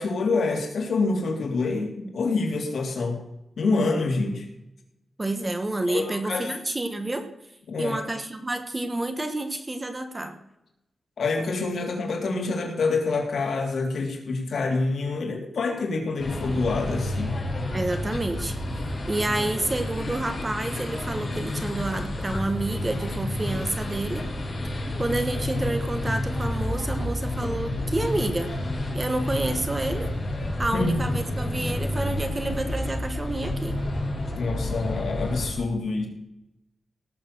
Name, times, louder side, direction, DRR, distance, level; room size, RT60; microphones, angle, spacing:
voice 1, 0.0-3.2 3.6-4.4 5.9-6.5 7.7-8.0 11.2-17.4 30.7-30.9 34.3-36.1, left 3 dB, 70° left, 2 dB, 3.2 m, -26 dB
voice 2, 5.2-7.3 7.8-10.4 17.7-18.5 19.1-24.3 25.0-28.5 28.9-30.1 30.6-33.8, right 2 dB, 20° right, 7 dB, 1.3 m, -29 dB
sound 1, 16.2-35.5, left 1 dB, 35° left, 5.7 m, -30 dB
18.0 x 7.1 x 7.0 m, 0.85 s
wide cardioid pair, 170°, 0 cm